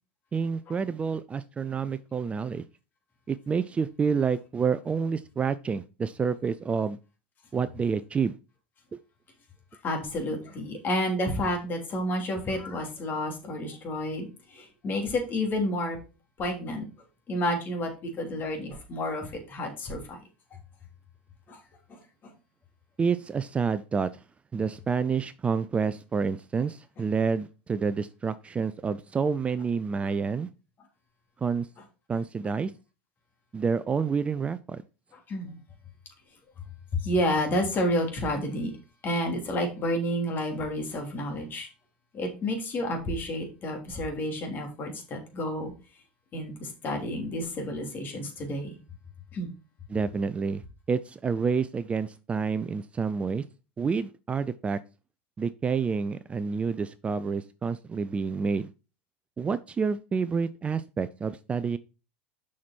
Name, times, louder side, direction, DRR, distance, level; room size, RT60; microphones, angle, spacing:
voice 1, 0.3-2.6 3.3-7.0 7.5-8.4 8.9-9.0 23.0-24.2 24.5-30.5 31.4-31.7 32.1-32.7 33.5-34.8 49.9-50.6 50.9-53.4 53.8-54.8 55.4-58.7 59.4-61.8, right 5 dB, 20° right, 0.5 m, -28 dB
voice 2, 9.8-16.0 16.4-16.9 17.3-20.2 21.5-21.6 21.9-22.3 35.1-35.6 36.9-38.7 39.0-41.7 42.1-45.7 46.3-48.8 49.3-49.5, left 1 dB, 35° left, 3.2 m, -30 dB
7.3 x 6.0 x 4.4 m
hypercardioid pair, 90°, 6 cm